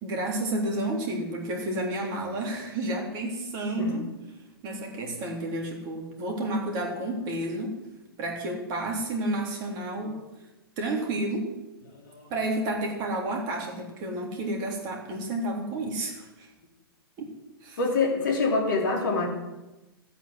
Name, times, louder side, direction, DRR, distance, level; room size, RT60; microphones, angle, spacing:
voice 1, 0.0-4.1 4.6-7.8 8.2-10.5 10.8-11.5 12.3-16.5 17.2-17.3 17.6-17.8, right 1 dB, 35° right, 0 dB, 3.7 m, -31 dB
voice 2, 11.9-12.3 17.8-19.3, left 3 dB, 55° left, 1 dB, 3.4 m, -26 dB
14.5 x 9.0 x 7.7 m, 1.0 s
figure-of-eight pair, 105°, 13 cm